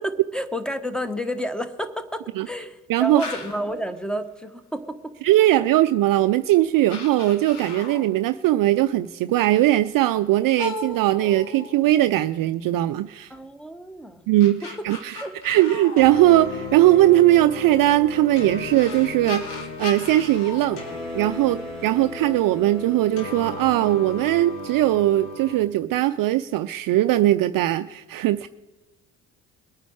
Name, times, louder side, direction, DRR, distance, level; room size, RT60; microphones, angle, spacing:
voice 1, 0.0-5.1 13.3-14.2 14.8-14.9 15.2-15.3, equal, ahead, 10 dB, 1.3 m, -30 dB
voice 2, 2.9-3.2 5.2-13.3 14.3-20.8 21.1-28.5, right 14 dB, 45° right, 12 dB, 0.5 m, -20 dB
sound 1, 3.2-3.8 5.8-5.9 6.6-6.7 6.9-8.2 10.6-12.2 14.1-16.8 18.2-18.3 18.7-21.6, left 2 dB, 55° left, 2.7 m, -36 dB
sound 2, 16.0-25.6, left 3 dB, 80° left, 3.4 m, -35 dB
21.5 x 9.1 x 4.8 m, 1.1 s
hypercardioid pair, 55°, 47 cm